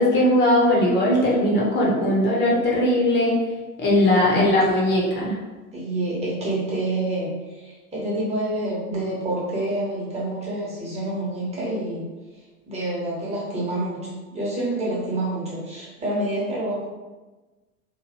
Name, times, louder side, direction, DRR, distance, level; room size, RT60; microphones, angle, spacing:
voice 1, 0.0-3.3 3.8-5.3, left 1 dB, 25° left, -5 dB, 0.9 m, -19 dB
voice 2, 4.0-4.5 5.7-12.0 12.7-16.9, right 1 dB, 15° right, -6 dB, 1.1 m, -28 dB
3.1 x 2.6 x 2.9 m, 1.2 s
figure-of-eight pair, 85°, 46 cm